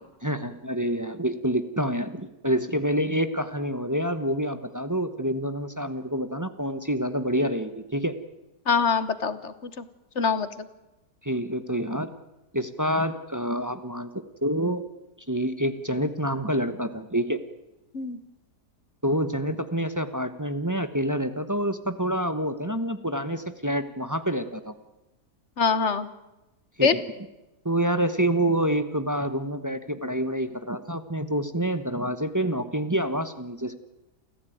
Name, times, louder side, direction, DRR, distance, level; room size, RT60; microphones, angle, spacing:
voice 1, 0.2-8.1 11.2-12.1 12.5-14.8 15.3-17.4 19.0-24.7 26.8-27.0 27.6-33.7, equal, 15° right, 10 dB, 0.9 m, -27 dB
voice 2, 8.7-9.8 10.2-10.7 17.9-18.2 25.6-26.1 26.8-26.9, left 5 dB, 45° left, 14 dB, 1.3 m, -24 dB
28.0 x 15.0 x 9.2 m, 1.0 s
omnidirectional pair, 1.8 m